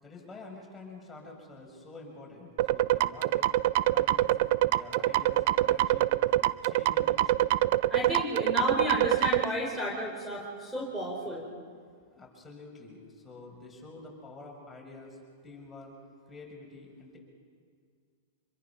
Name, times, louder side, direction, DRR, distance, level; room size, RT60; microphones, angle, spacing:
voice 1, 0.0-3.5 3.9-4.4 4.7-7.5 12.2-15.2 15.4-15.9 16.3-17.2, left 3 dB, 10° left, 0 dB, 5.3 m, -48 dB
sound 1, 2.6-9.4, right 15 dB, 55° right, 0.6 m, -25 dB
voice 2, 7.9-11.4, left 1 dB, 10° right, -1 dB, 4.2 m, -32 dB
25.5 x 22.5 x 5.8 m, 2.1 s
hypercardioid pair, 130°, 0 cm